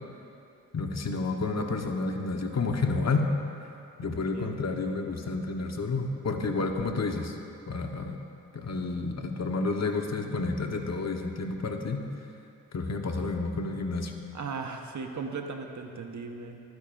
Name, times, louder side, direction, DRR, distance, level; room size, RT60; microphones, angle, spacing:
voice 1, 0.7-3.3 4.0-7.4 7.7-8.2 8.5-12.0 12.7-14.1, left 3 dB, 50° left, 3 dB, 1.3 m, -30 dB
voice 2, 4.0-4.6 14.3-16.6, right 4 dB, 55° right, 4 dB, 1.2 m, -37 dB
24.5 x 9.5 x 2.6 m, 2.6 s
supercardioid pair, 50°, 34 cm